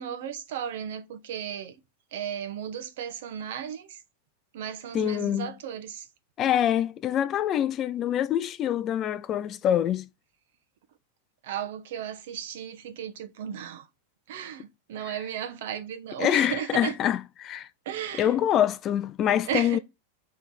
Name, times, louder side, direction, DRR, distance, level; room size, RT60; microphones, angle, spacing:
voice 1, 0.0-1.8 2.1-4.0 4.5-6.1 11.4-13.9 14.3-17.0 17.8-18.4 19.5-19.8, right 9 dB, 55° right, 1.0 m, -35 dB
voice 2, 4.9-5.5 6.4-10.1 16.2-17.7 18.2-19.8, left 10 dB, 20° left, 0.3 m, -25 dB
5.9 x 3.4 x 5.6 m
supercardioid pair, 175°, 0 cm